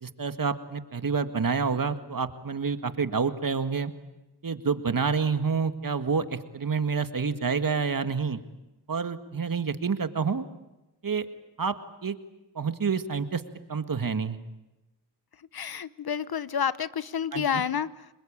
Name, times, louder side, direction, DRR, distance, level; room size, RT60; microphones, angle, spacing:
voice 1, 0.0-3.9 4.4-8.4 8.9-10.5 11.0-11.3 11.6-11.8 12.0-12.2 12.6-13.4 13.7-14.4 17.3-17.4, right 5 dB, 50° right, 10 dB, 1.9 m, -28 dB
voice 2, 15.4-18.1, left 8 dB, 55° left, 17 dB, 1.0 m, -30 dB
30.0 x 21.5 x 8.9 m, 1.0 s
cardioid pair, 45°, 43 cm